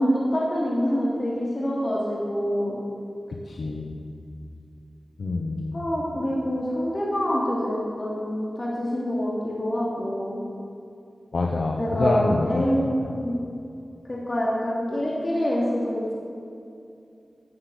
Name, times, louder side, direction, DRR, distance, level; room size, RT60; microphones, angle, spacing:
voice 1, 0.0-2.8 5.7-10.4 11.8-13.4 14.1-16.1, equal, 45° left, -5 dB, 3.0 m, -26 dB
voice 2, 3.3-4.1 5.2-5.8 11.3-12.7, left 2 dB, 90° left, 0 dB, 0.9 m, -27 dB
15.0 x 7.9 x 7.9 m, 2.5 s
cardioid pair, 50°, 0 cm